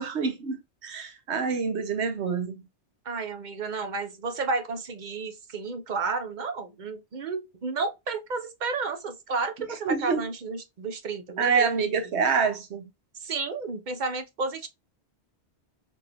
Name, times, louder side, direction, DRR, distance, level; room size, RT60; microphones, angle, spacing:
voice 1, 0.0-2.6 9.9-10.2 11.4-12.9, right 5 dB, 75° right, 1.1 m, -27 dB
voice 2, 3.1-12.0 13.2-14.7, right 4 dB, 50° right, 0.7 m, -32 dB
3.5 x 2.9 x 2.5 m
omnidirectional pair, 1.1 m